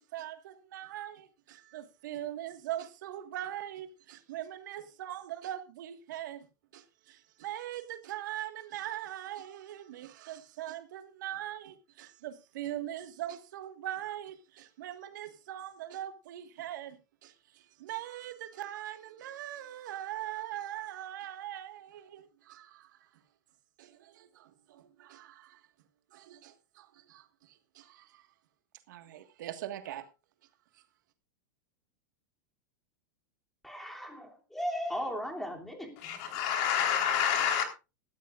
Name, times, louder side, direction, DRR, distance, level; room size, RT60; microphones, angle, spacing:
voice 1, 0.1-6.4 6.7-23.0 23.8-25.6 26.1-28.2 28.9-30.1, right 12 dB, 75° right, 1.7 m, -41 dB
voice 2, 33.6-36.0, equal, ahead, 2.8 m, -36 dB
voice 3, 36.0-37.6, left 8 dB, 55° left, 3.9 m, -28 dB
18.0 x 13.5 x 2.5 m
supercardioid pair, 140°, 10 cm